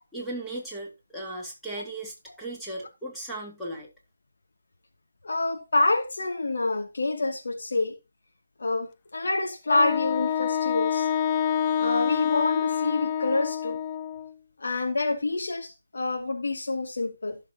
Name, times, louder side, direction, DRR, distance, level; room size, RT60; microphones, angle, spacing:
voice 1, 0.1-3.9, right 1 dB, 5° left, 3.4 m, -36 dB
voice 2, 5.2-8.0 8.6-11.1 11.8-13.8 14.6-17.4, left 2 dB, 65° left, 2.5 m, -27 dB
Wind instrument woodwind instrument, 9.7-14.3, left 8 dB, 25° left, 0.6 m, -27 dB
15.0 x 7.3 x 2.9 m
figure-of-eight pair, 150°, 0 cm